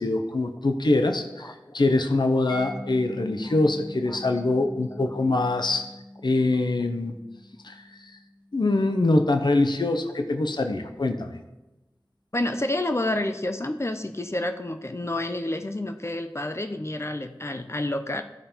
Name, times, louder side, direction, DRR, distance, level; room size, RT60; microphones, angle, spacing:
voice 1, 0.0-5.9 6.2-7.1 7.6-8.1 8.5-11.4, left 2 dB, 70° left, 7 dB, 0.8 m, -24 dB
voice 2, 1.4-1.8 4.1-4.2 12.3-18.2, left 1 dB, 35° left, 7 dB, 0.6 m, -29 dB
Mallet percussion, 2.5-9.3, left 1 dB, 85° left, 2.9 m, -43 dB
14.0 x 5.2 x 4.4 m, 1.0 s
wide cardioid pair, 50°, 8 cm